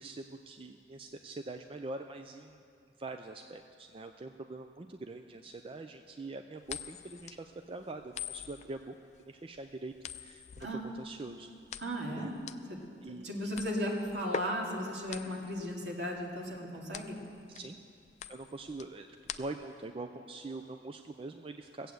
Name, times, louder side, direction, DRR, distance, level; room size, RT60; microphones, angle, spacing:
voice 1, 0.0-2.6 3.0-11.5 12.2-12.3 13.0-13.5 17.5-17.8 18.3-19.1 19.4-21.9, right 2 dB, 30° right, 6 dB, 0.4 m, -44 dB
sound 1, 6.6-19.8, left 7 dB, 40° left, 0.4 m, -44 dB
voice 2, 11.8-12.3 13.2-17.2, equal, 70° right, -2 dB, 2.5 m, -35 dB
17.5 x 8.2 x 7.7 m, 2.4 s
head